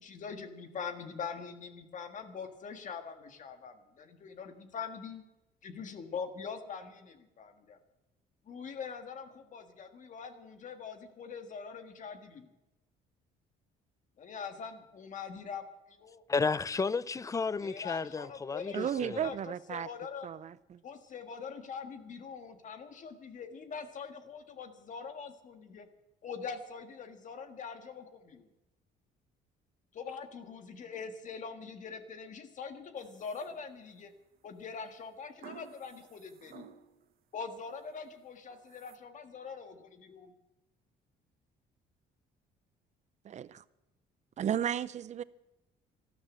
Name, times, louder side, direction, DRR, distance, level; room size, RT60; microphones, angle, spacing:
voice 1, 0.0-5.2 5.6-7.8 8.4-12.5 14.2-16.2 17.6-20.3 20.8-25.9 26.2-28.5 29.9-34.1 34.4-36.7 37.3-40.3, left 6 dB, 50° left, 1.7 m, -43 dB
voice 2, 16.3-19.2, left 4 dB, 20° left, 0.5 m, -32 dB
voice 3, 18.7-19.9 20.2-20.8 43.2-43.6 44.4-45.2, right 9 dB, 45° right, 0.6 m, -34 dB
sound 1, 33.0-34.0 35.4-37.1 37.5-38.0 38.5-39.0, right 9 dB, 60° right, 1.0 m, -54 dB
13.0 x 12.5 x 7.3 m
cardioid pair, 110°, 17 cm